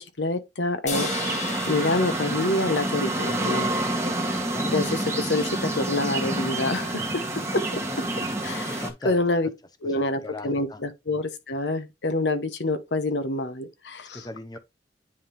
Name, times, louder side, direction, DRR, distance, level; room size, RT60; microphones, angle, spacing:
voice 1, 0.0-3.7 4.7-7.0 7.5-7.8 8.4-9.5 9.8-14.2, left 2 dB, 75° left, 1.1 m, -27 dB
sound 1, 0.9-4.3, left 4 dB, 45° left, 1.5 m, -36 dB
sound 2, 0.9-8.9, right 1 dB, 15° right, 1.7 m, -28 dB
voice 2, 4.3-4.7 6.8-7.2 8.2-8.3 8.7-9.3 9.8-10.8 14.1-14.6, left 2 dB, 25° left, 1.0 m, -39 dB
9.7 x 3.7 x 3.5 m
head